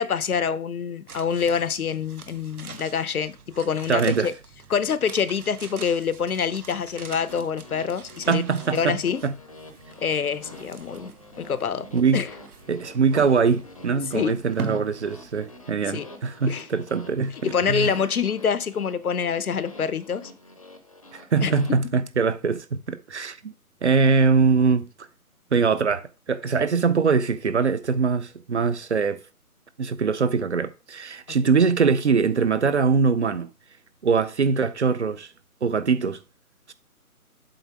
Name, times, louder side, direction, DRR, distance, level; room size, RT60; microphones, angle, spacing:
voice 1, 0.0-4.3 4.7-8.4 8.7-9.2 10.0-11.1 11.4-11.9 12.1-12.3 14.1-14.3 15.9-16.1 16.5-16.7 17.4-20.3 21.4-21.5, left 6 dB, 75° left, 0.8 m, -26 dB
sound 1, 1.1-16.3 16.5-16.6, right 4 dB, 75° right, 1.2 m, -43 dB
voice 2, 3.9-4.3 8.3-9.0 9.2-9.3 11.9-12.2 12.7-17.9 21.1-23.5 23.8-24.9 25.5-29.2 29.8-33.5 34.0-35.3 35.6-36.2, right 5 dB, 50° right, 0.7 m, -22 dB
sound 2, 7.0-21.7, left 2 dB, 25° left, 0.7 m, -47 dB
7.8 x 4.1 x 4.9 m
figure-of-eight pair, 160°, 45 cm